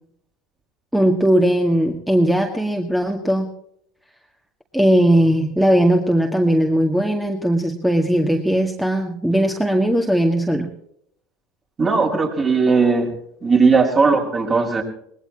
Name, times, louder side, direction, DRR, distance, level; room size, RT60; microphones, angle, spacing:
voice 1, 0.9-3.5 4.7-10.7, right 1 dB, ahead, 2 dB, 2.0 m, -18 dB
voice 2, 11.8-13.1 13.4-14.8, right 4 dB, 35° right, 1 dB, 5.6 m, -17 dB
21.0 x 19.5 x 3.0 m, 0.73 s
hypercardioid pair, 80°, 0 cm